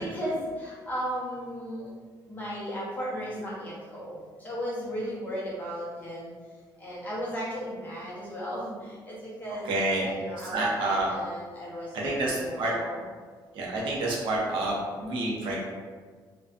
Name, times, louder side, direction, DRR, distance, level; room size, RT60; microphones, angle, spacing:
voice 1, 0.0-1.9 2.3-4.2 4.4-6.3 6.8-8.7 9.1-9.7 10.0-13.0, equal, 20° left, -8 dB, 0.8 m, -35 dB
voice 2, 9.5-11.1 11.9-12.7 13.5-15.6, right 2 dB, 90° right, -4 dB, 0.6 m, -29 dB
2.5 x 2.2 x 2.5 m, 1.5 s
cardioid pair, 150°, 8 cm